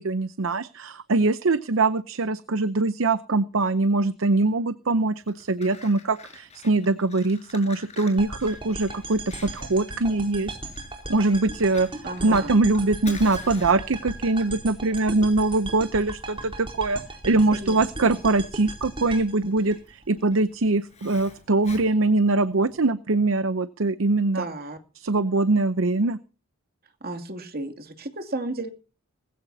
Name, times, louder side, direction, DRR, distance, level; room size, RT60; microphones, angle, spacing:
voice 1, 0.0-10.6 11.1-24.5 25.0-26.2, right 3 dB, 65° right, 13 dB, 0.8 m, -23 dB
Fire, 5.1-22.8, left 4 dB, 30° left, 5.7 m, -47 dB
sound 1, 8.2-20.4, right 2 dB, 25° right, 4.5 m, -37 dB
voice 2, 12.0-12.6 17.3-18.1 24.4-24.8 27.0-28.7, right 2 dB, 45° right, 6 dB, 2.7 m, -34 dB
20.0 x 16.0 x 2.8 m, 0.35 s
head